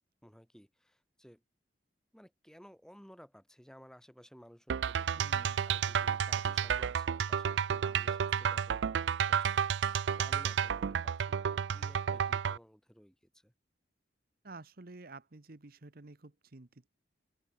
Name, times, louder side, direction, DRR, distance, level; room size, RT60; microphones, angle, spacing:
voice 1, 0.2-1.4 2.1-13.5, equal, 5° left, 3.1 m, -57 dB
sound 1, 4.7-12.6, right 7 dB, 80° right, 0.4 m, -31 dB
voice 2, 5.1-5.6 14.4-16.9, right 3 dB, 55° right, 1.1 m, -51 dB
open air
head